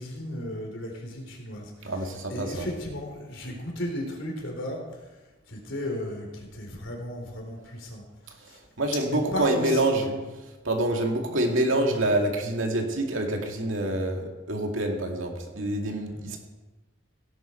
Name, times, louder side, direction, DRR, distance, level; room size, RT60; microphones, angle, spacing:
voice 1, 0.0-1.9 2.3-4.8 5.5-8.0 8.5-8.6 9.0-10.1, left 1 dB, 75° left, 1 dB, 3.7 m, -35 dB
voice 2, 1.8-2.7 8.8-10.1 10.6-16.4, right 1 dB, 85° right, 2 dB, 2.4 m, -26 dB
17.0 x 11.0 x 4.5 m, 1.2 s
head